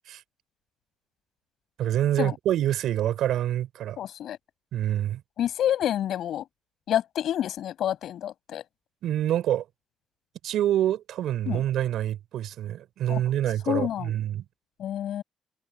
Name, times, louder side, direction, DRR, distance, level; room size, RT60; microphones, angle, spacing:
voice 1, 1.8-4.0 4.7-5.2 9.0-9.6 10.4-14.4, right 12 dB, 80° right, 4.2 m, -26 dB
voice 2, 4.0-4.4 5.4-6.4 6.9-8.6 11.4-11.6 13.1-13.2 13.7-14.1 14.8-15.2, left 11 dB, 75° left, 6.9 m, -28 dB
cardioid pair, 90°, 0 cm